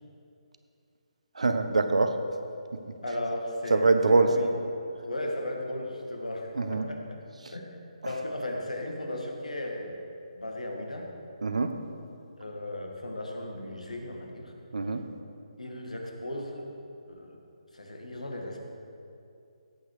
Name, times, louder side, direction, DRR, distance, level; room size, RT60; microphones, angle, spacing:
voice 1, 1.4-2.2 3.7-4.5 6.6-6.9 11.4-11.8 14.7-15.0, right 3 dB, 70° right, 8 dB, 1.1 m, -24 dB
voice 2, 3.0-4.5 4.9-7.2 7.5-7.8 8.0-10.0 10.4-11.1 12.4-14.5 15.6-16.7 17.1-17.4 17.7-18.6, left 1 dB, 80° left, 1 dB, 2.2 m, -36 dB
17.5 x 8.4 x 5.0 m, 2.6 s
figure-of-eight pair, 145°, 4 cm